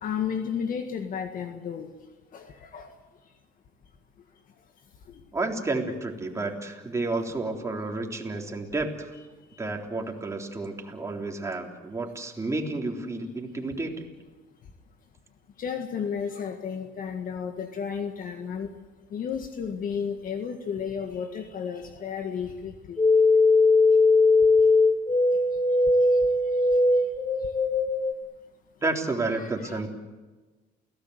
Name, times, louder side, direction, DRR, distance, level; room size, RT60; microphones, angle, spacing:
voice 1, 0.0-1.9 2.3-2.9 8.2-8.3 15.6-18.7 19.1-23.0 29.4-29.9, left 7 dB, 55° left, 6 dB, 1.9 m, -33 dB
voice 2, 5.3-9.1 9.6-14.1 28.8-29.9, right 2 dB, 15° right, 1 dB, 3.8 m, -31 dB
sound 1, 23.0-28.1, left 3 dB, 25° left, 1.4 m, -20 dB
29.0 x 17.5 x 8.2 m, 1.3 s
cardioid pair, 110°, 17 cm